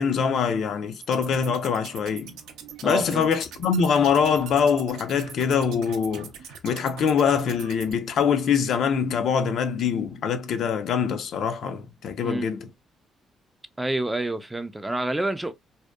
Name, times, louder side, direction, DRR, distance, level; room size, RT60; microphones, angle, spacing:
voice 1, 0.0-2.4 2.8-6.3 6.6-12.7, left 6 dB, 70° left, 0.4 m, -24 dB
sound 1, 1.0-7.9, right 7 dB, 90° right, 0.4 m, -43 dB
voice 2, 2.8-3.3 12.2-12.5 13.8-15.5, right 2 dB, 10° right, 0.3 m, -28 dB
2.7 x 2.1 x 2.2 m
cardioid pair, 90°, 0 cm